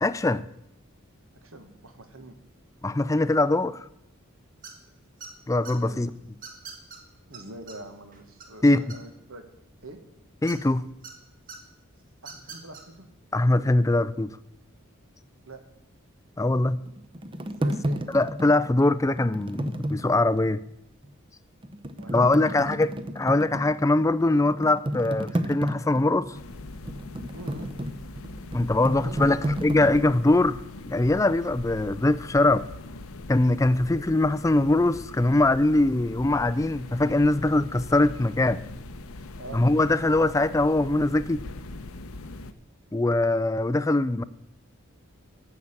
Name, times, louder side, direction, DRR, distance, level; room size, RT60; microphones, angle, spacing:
voice 1, 0.0-0.4 2.8-3.9 5.5-6.1 8.6-8.9 10.4-10.8 13.3-14.3 16.4-16.8 18.1-20.6 22.1-26.4 28.5-30.6 30.9-32.7 33.3-38.6 39.5-41.4 42.9-44.2, left 2 dB, 15° left, 0.4 m, -22 dB
voice 2, 1.3-2.3 5.7-6.1 7.3-9.4 9.8-10.0 12.2-13.1 15.4-15.6 17.4-18.0 21.8-22.8 27.3-27.7 29.0-29.4 39.4-39.6, right 2 dB, 75° right, 1.6 m, -44 dB
sound 1, 4.6-4.9 5.2-5.7 6.4-7.0 7.3-7.4 7.7-7.8 8.1-9.3 10.5-11.1 11.5-11.6 12.2-12.8, right 5 dB, 40° right, 1.9 m, -42 dB
sound 2, 16.6-20.6 21.0-21.1 21.6-30.1, equal, 25° right, 0.7 m, -32 dB
sound 3, 26.3-42.5, left 2 dB, 80° left, 0.8 m, -41 dB
10.5 x 7.2 x 8.7 m
head